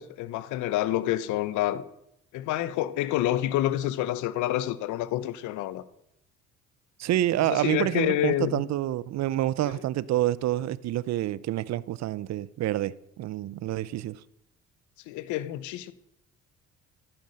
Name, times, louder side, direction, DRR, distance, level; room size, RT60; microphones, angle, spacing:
voice 1, 0.0-1.8 2.3-5.8 7.5-8.6 15.1-15.9, left 14 dB, 75° left, 1.0 m, -28 dB
voice 2, 7.0-14.2, right 14 dB, 60° right, 0.7 m, -28 dB
14.5 x 9.2 x 6.5 m
supercardioid pair, 70°, 30 cm